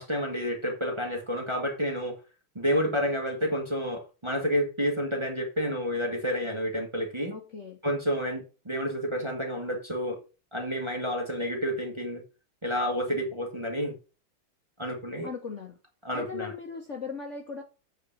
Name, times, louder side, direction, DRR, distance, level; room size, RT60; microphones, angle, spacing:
voice 1, 0.0-2.2 2.5-7.3 7.8-10.2 10.5-12.2 12.6-13.9 14.8-15.3 16.0-16.5, equal, 15° right, 1.4 m, -30 dB
voice 2, 7.3-7.8 15.2-15.8 16.1-17.6, left 5 dB, 45° left, 1.1 m, -38 dB
8.2 x 4.0 x 6.7 m
omnidirectional pair, 2.3 m